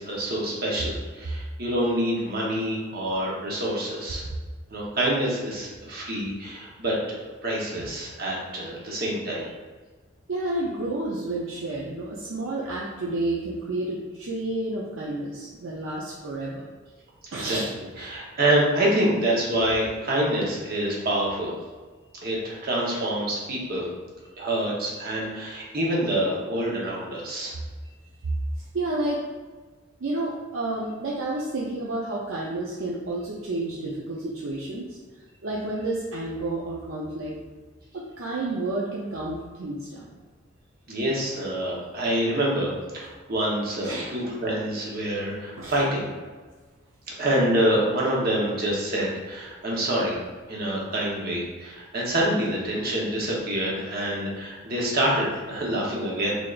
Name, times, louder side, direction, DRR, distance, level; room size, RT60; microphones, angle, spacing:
voice 1, 0.0-4.2 4.7-9.5 17.4-17.6 18.0-21.5 22.2-23.9 24.4-27.5 40.9-46.1 47.2-50.2 50.5-56.4, right 1 dB, 50° right, -4 dB, 0.9 m, -26 dB
voice 2, 10.3-16.6 17.3-17.7 28.7-29.2 30.0-35.0 35.4-37.3 37.9-40.2 43.8-44.1 45.6-45.7, right 2 dB, 70° right, -4 dB, 0.5 m, -30 dB
3.7 x 3.3 x 2.4 m, 1.4 s
head